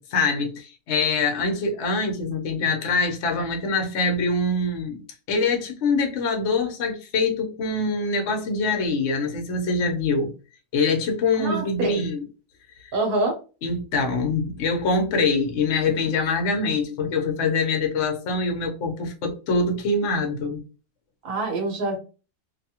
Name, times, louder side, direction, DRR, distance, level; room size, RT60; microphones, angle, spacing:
voice 1, 0.0-5.0 5.3-10.3 10.7-12.2 12.8-12.9 13.6-20.6, left 3 dB, 55° left, 0.9 m, -24 dB
voice 2, 11.4-12.0 12.9-13.4 21.2-22.0, right 2 dB, 40° right, 0.9 m, -25 dB
2.6 x 2.3 x 2.8 m
omnidirectional pair, 1.7 m